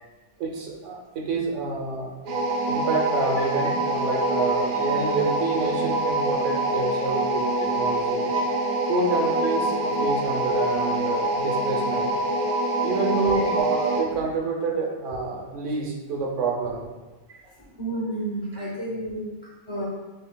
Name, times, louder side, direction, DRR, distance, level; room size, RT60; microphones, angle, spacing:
voice 1, 0.4-2.1 2.7-8.3 8.9-12.1 12.8-16.8 17.3-17.4 18.6-18.7, right 4 dB, 85° right, -1 dB, 1.1 m, -28 dB
sound 1, 2.3-14.1, right 1 dB, 50° right, 0.6 m, -25 dB
voice 2, 13.0-13.3 17.8-19.2 19.7-19.9, right 1 dB, 25° left, -6 dB, 0.7 m, -30 dB
6.4 x 2.9 x 2.2 m, 1.2 s
omnidirectional pair, 1.2 m